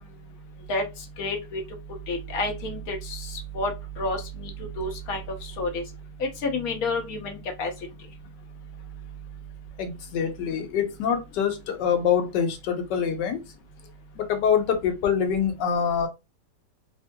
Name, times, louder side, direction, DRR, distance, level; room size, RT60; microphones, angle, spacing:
voice 1, 0.7-1.6 2.1-5.8 6.2-7.7, left 2 dB, 65° left, 1.2 m, -30 dB
voice 2, 9.8-13.4 14.2-16.1, left 7 dB, 85° left, 1.3 m, -25 dB
3.5 x 2.7 x 2.2 m
omnidirectional pair, 1.8 m